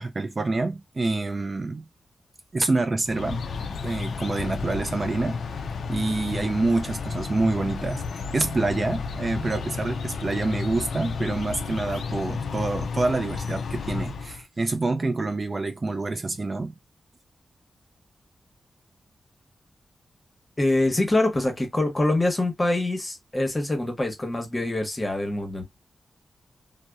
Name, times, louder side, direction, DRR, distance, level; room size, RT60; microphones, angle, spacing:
voice 1, 0.0-1.9 2.5-16.7, right 3 dB, 35° right, 0.4 m, -27 dB
sound 1, 3.0-14.4, left 5 dB, 80° left, 0.3 m, -32 dB
voice 2, 20.6-25.6, left 2 dB, 20° left, 0.9 m, -24 dB
2.7 x 2.0 x 2.3 m
wide cardioid pair, 90°, 0 cm